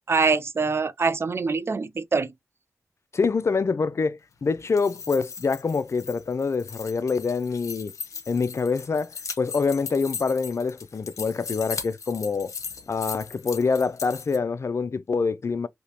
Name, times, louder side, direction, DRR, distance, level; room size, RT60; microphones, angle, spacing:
voice 1, 0.1-2.3, right 4 dB, 50° right, 0.4 m, -24 dB
voice 2, 3.1-7.9 8.3-9.1 9.4-12.5 12.9-15.7, left 4 dB, 55° left, 0.4 m, -25 dB
sound 1, 4.6-14.4, left 5 dB, 75° left, 0.8 m, -38 dB
3.4 x 2.8 x 2.9 m
cardioid pair, 45°, 6 cm